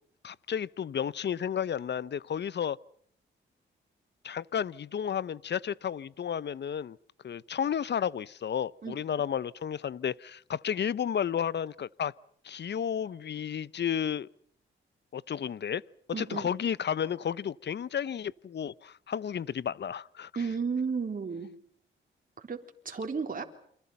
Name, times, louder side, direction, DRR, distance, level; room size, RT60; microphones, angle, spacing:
voice 1, 0.2-2.8 4.2-7.0 7.2-12.1 12.4-14.3 15.1-15.8 16.2-20.3, left 8 dB, 60° left, 0.9 m, -32 dB
voice 2, 16.1-16.5 20.4-21.5 22.4-23.4, right 5 dB, 45° right, 4.0 m, -33 dB
29.0 x 26.5 x 5.7 m
cardioid pair, 70°, 21 cm